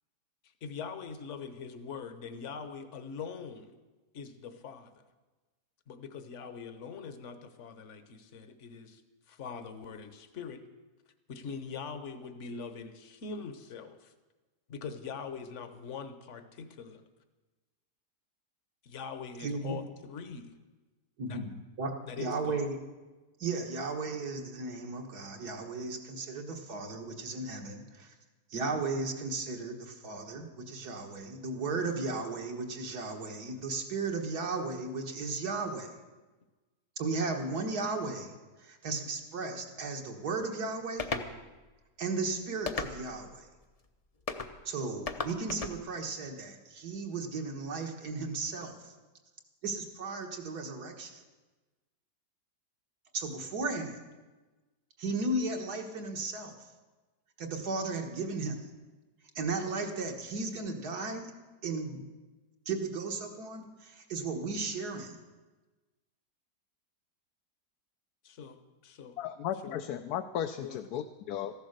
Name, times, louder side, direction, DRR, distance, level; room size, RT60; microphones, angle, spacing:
voice 1, 0.4-3.7 4.1-5.0 5.9-9.0 9.3-10.6 11.3-14.1 14.7-17.0 18.8-20.5 21.2-21.4 22.0-22.7 68.2-69.2 69.6-69.8 70.6-70.9, left 5 dB, 50° left, 10 dB, 1.2 m, -43 dB
voice 2, 19.4-19.7 21.2-21.9 22.2-22.8 23.4-28.1 28.5-35.9 37.0-38.3 38.6-41.1 42.0-43.5 44.7-48.9 49.6-51.2 53.1-54.0 55.0-56.5 57.4-58.6 59.4-61.3 61.6-62.0 62.7-65.2, right 3 dB, 75° right, 3 dB, 2.0 m, -35 dB
sound 1, 41.0-41.3 42.7-43.2 44.3-44.5 45.1-45.8, left 4 dB, 35° left, 0.6 m, -35 dB
voice 3, 69.2-71.5, left 10 dB, 75° left, 7 dB, 1.1 m, -35 dB
14.5 x 11.5 x 6.6 m, 1.2 s
omnidirectional pair, 1.7 m